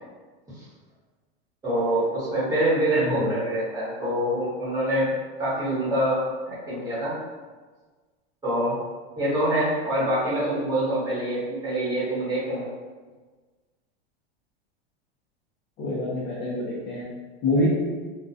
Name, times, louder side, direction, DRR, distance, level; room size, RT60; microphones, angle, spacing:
voice 1, 1.6-5.1 5.4-7.2 8.4-8.8 9.2-12.7, right 1 dB, 10° right, -10 dB, 1.1 m, -25 dB
voice 2, 3.0-3.3 15.8-17.1 17.4-17.7, left 1 dB, 30° left, -7 dB, 0.5 m, -26 dB
2.3 x 2.2 x 2.6 m, 1.4 s
supercardioid pair, 125°, 32 cm